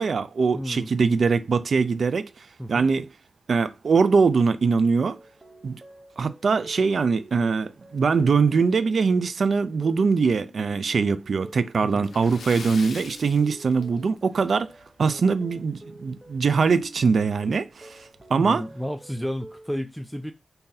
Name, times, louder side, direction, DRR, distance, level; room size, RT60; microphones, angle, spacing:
voice 1, 0.0-2.3 2.7-3.1 3.5-5.2 5.6-5.8 6.2-14.7 15.0-18.0 18.3-18.6, right 5 dB, 65° right, 0.4 m, -22 dB
voice 2, 0.5-0.9 2.6-2.9 11.9-12.1 18.3-20.3, equal, ahead, 0.4 m, -32 dB
sound 1, 5.0-19.7, right 1 dB, 20° right, 0.9 m, -48 dB
Splash splatter, 12.0-14.4 14.7-14.8 15.3-15.4 16.8-16.9 17.2-17.3 18.0-18.2, left 5 dB, 80° left, 0.4 m, -42 dB
2.7 x 2.6 x 3.8 m
cardioid pair, 50°, 0 cm